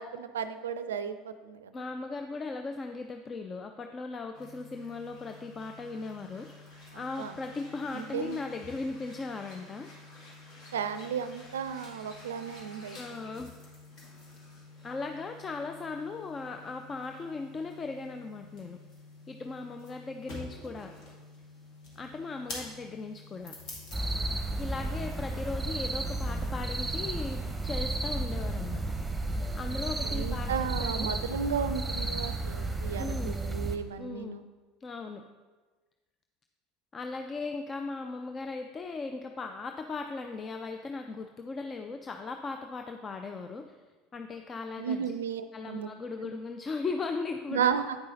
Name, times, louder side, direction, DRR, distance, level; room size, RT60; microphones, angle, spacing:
voice 1, 0.0-1.7 6.9-7.3 7.9-8.4 10.7-13.2 30.0-34.4 44.8-45.9 46.2-46.3 47.5-48.0, right 7 dB, 80° right, 11 dB, 0.4 m, -34 dB
voice 2, 1.7-6.5 6.9-9.9 12.9-13.5 14.8-18.8 19.3-20.9 22.0-23.5 24.6-28.8 29.5-31.1 33.0-33.4 34.0-34.4 34.8-35.2 36.9-43.8 44.1-45.0 45.5-47.8, left 3 dB, 30° left, 6 dB, 0.5 m, -38 dB
sound 1, 4.3-24.0, left 2 dB, 55° left, 2.0 m, -49 dB
sound 2, 23.9-33.8, right 2 dB, 10° right, 1.0 m, -32 dB
8.9 x 5.5 x 4.0 m, 1.3 s
figure-of-eight pair, 70°, 0 cm